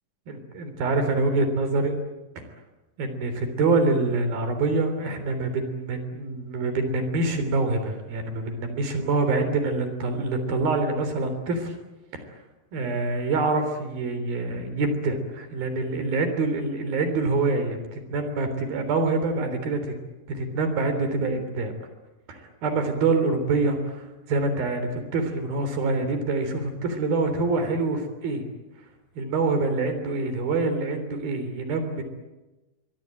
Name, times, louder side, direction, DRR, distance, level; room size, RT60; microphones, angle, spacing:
voice 1, 0.3-2.0 3.0-11.7 12.1-12.2 12.7-19.9 20.3-21.7 22.3-28.5 29.2-32.0, right 3 dB, 80° right, 8 dB, 5.3 m, -26 dB
25.0 x 23.0 x 9.1 m, 1.1 s
omnidirectional pair, 4.2 m